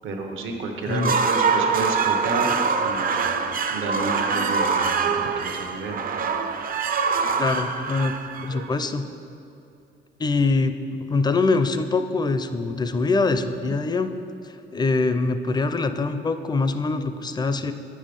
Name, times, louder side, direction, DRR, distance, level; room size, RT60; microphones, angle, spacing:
voice 1, 0.0-3.4 3.7-6.0, right 3 dB, 80° right, 3 dB, 1.0 m, -31 dB
sound 1, 0.8-9.0, right 5 dB, 45° right, 0.5 m, -24 dB
voice 2, 7.4-8.1 8.4-9.1 10.2-14.1 14.7-17.7, left 3 dB, 20° left, 10 dB, 0.4 m, -23 dB
8.0 x 5.5 x 5.2 m, 2.7 s
cardioid pair, 90°, 20 cm